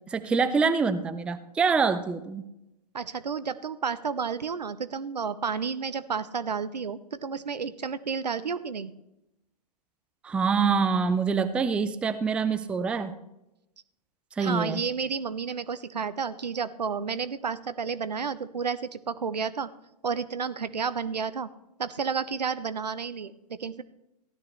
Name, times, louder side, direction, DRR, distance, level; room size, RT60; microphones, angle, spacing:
voice 1, 0.1-2.4 10.2-13.1 14.4-14.8, right 5 dB, 5° right, 12 dB, 0.4 m, -25 dB
voice 2, 2.9-8.9 14.4-19.7 20.0-21.5 21.8-23.8, right 6 dB, 80° right, 14 dB, 0.7 m, -31 dB
15.0 x 11.5 x 3.2 m, 0.90 s
figure-of-eight pair, 115°, 21 cm